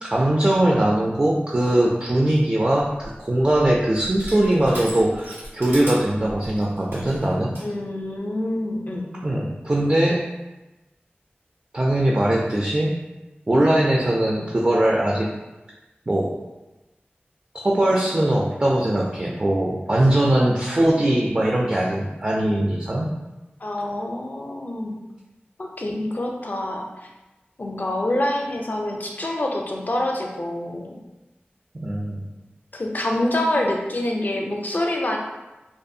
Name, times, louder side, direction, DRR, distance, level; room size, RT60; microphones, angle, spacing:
voice 1, 0.0-7.5 9.2-10.2 11.7-13.0 13.5-15.3 16.1-16.4 17.5-23.1 31.8-32.2, right 1 dB, 30° right, -2 dB, 0.3 m, -21 dB
Crushing, 3.0-7.7, equal, 90° right, 1.4 m, -38 dB
voice 2, 7.6-9.0 13.5-13.6 23.6-25.0 25.6-27.1 27.6-31.0 32.7-35.2, left 1 dB, 50° left, 0 dB, 0.4 m, -26 dB
2.4 x 2.3 x 2.6 m, 1.1 s
wide cardioid pair, 55°, 4 cm